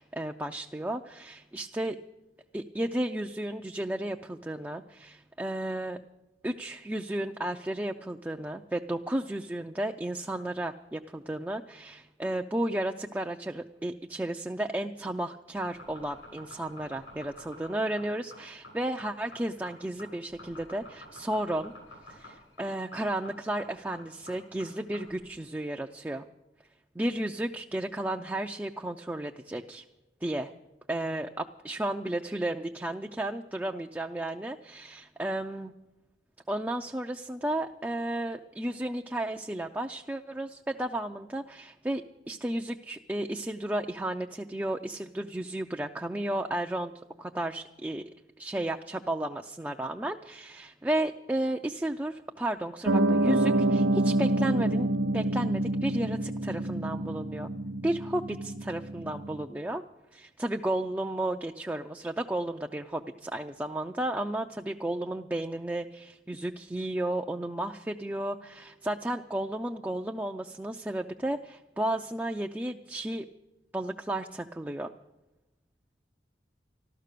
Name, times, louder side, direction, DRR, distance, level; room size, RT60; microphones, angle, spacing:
voice 1, 0.0-2.0 2.5-6.0 6.4-21.7 22.1-26.2 27.0-29.8 30.2-30.5 30.9-35.7 36.5-46.9 47.2-48.0 48.4-54.9 55.1-57.5 57.8-59.8 60.1-73.3 73.7-74.9, right 1 dB, 10° right, 3 dB, 0.4 m, -33 dB
sound 1, 15.5-25.1, left 2 dB, 85° left, 7.0 m, -48 dB
Piano, 52.9-59.4, right 1 dB, 85° right, 0.7 m, -27 dB
14.0 x 12.5 x 6.7 m, 0.98 s
head